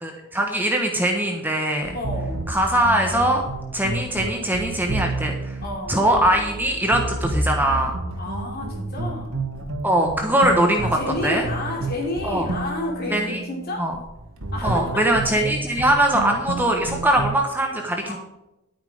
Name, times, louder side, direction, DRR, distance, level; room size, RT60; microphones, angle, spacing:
voice 1, 0.0-2.0 2.5-3.4 3.7-5.6 5.9-7.9 9.8-11.0 11.2-11.4 12.2-12.5 13.1-13.4 13.8-14.0 14.6-18.2, right 1 dB, 10° right, 2 dB, 1.2 m, -21 dB
sound 1, 1.8-17.4, right 2 dB, 70° right, 1.8 m, -30 dB
voice 2, 1.9-2.5 5.6-6.1 8.2-9.4 10.8-13.9 14.5-15.3 15.7-15.9 18.0-18.2, left 1 dB, 45° left, 0 dB, 3.0 m, -31 dB
11.0 x 9.1 x 5.0 m, 0.92 s
head